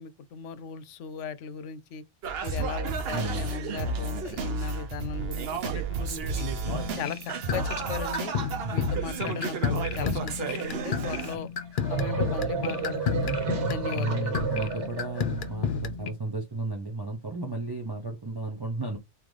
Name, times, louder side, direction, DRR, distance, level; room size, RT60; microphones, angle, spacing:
voice 1, 0.0-2.0 2.4-6.5 6.9-8.3 8.7-11.5 11.9-14.4, left 6 dB, 90° left, 0.9 m, -37 dB
Singing, 2.2-11.4, right 4 dB, 60° right, 0.9 m, -32 dB
voice 2, 3.1-3.5 8.6-8.9 13.9-19.0, right 2 dB, 25° right, 0.6 m, -34 dB
sound 1, 6.6-16.1, left 6 dB, 55° left, 0.7 m, -32 dB
sound 2, 11.6-15.5, right 5 dB, 80° right, 1.3 m, -31 dB
3.8 x 2.8 x 3.2 m
omnidirectional pair, 1.2 m